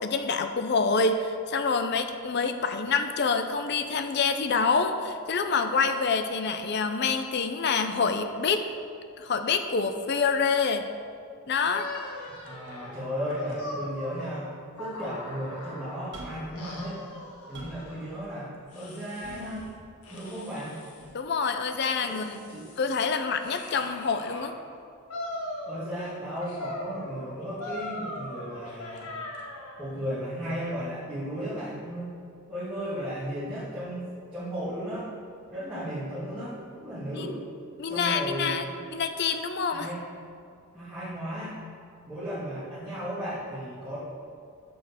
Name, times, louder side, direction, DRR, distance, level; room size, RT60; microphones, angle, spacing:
voice 1, 0.0-8.7 9.2-10.8 11.5-11.9 21.1-22.5 22.8-24.5 37.1-37.3 37.8-38.6 38.9-39.9, left 5 dB, 50° left, 8 dB, 0.5 m, -27 dB
sound 1, 11.7-16.1 16.6-18.1 18.7-19.6 20.0-21.0 21.6-24.5 25.1-26.1 26.4-29.8, left 1 dB, 85° left, 1.3 m, -40 dB
voice 2, 12.4-14.5 14.8-17.1 17.5-19.7 20.1-20.8 22.0-22.2 22.5-22.7 25.7-29.1 29.8-32.1 32.5-35.1 35.5-37.4 37.8-38.8 39.7-40.0 40.7-41.6 42.1-44.0, equal, 5° right, -12 dB, 1.7 m, -35 dB
sound 2, 16.1-16.6 17.1-17.9 19.2-19.8 21.0-21.2, right 1 dB, 55° right, 1.7 m, -45 dB
6.9 x 5.8 x 6.5 m, 2.3 s
head